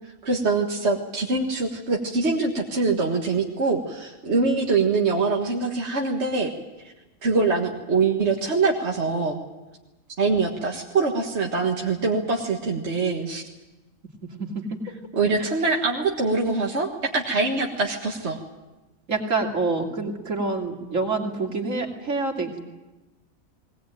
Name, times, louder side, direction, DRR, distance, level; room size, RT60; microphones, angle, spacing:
voice 1, 0.2-6.5 7.2-9.4 10.2-13.4 15.1-18.4, right 3 dB, 55° right, 0 dB, 1.9 m, -24 dB
voice 2, 14.4-14.8 19.1-22.6, right 3 dB, 70° right, 1 dB, 3.2 m, -27 dB
20.5 x 19.0 x 9.1 m, 1.1 s
omnidirectional pair, 1.4 m